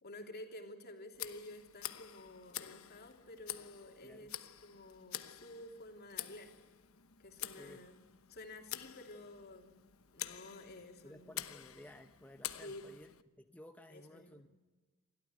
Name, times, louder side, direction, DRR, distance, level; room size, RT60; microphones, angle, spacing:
voice 1, 0.0-6.5 7.2-8.0 8.3-9.8 10.1-11.3 12.6-12.9 13.9-14.4, left 1 dB, 50° left, 3 dB, 3.1 m, -51 dB
Tick, 1.1-13.2, left 12 dB, 75° left, 1.0 m, -48 dB
voice 2, 7.5-7.8 11.0-13.1 13.4-14.5, left 1 dB, 5° left, 6 dB, 0.8 m, -55 dB
29.0 x 13.0 x 9.5 m, 1.3 s
head